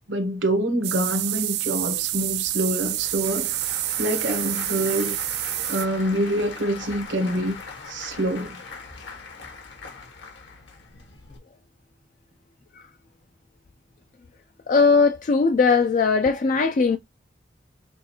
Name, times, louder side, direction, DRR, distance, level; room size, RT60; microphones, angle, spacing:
voice 1, 0.0-3.5 4.0-5.2 5.7-7.6 7.9-8.6, right 1 dB, 75° right, 1.0 m, -26 dB
sound 1, 0.8-5.9, right 16 dB, 55° right, 0.3 m, -28 dB
Applause / Crowd, 1.8-11.4, left 4 dB, 75° left, 1.4 m, -41 dB
voice 2, 14.7-17.0, left 4 dB, 40° left, 0.3 m, -19 dB
6.0 x 2.4 x 2.8 m
head